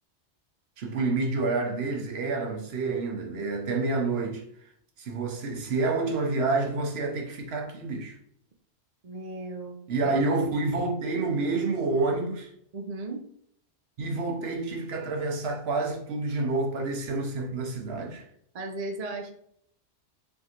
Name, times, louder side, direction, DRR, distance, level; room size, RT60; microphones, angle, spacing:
voice 1, 0.8-4.4 5.0-8.2 9.9-12.5 14.0-18.3, right 3 dB, 65° right, 0.9 m, -28 dB
voice 2, 9.0-9.8 10.0-10.1 12.7-13.2 18.5-19.3, right 2 dB, 45° right, 0.5 m, -36 dB
3.5 x 3.4 x 2.8 m
omnidirectional pair, 1.2 m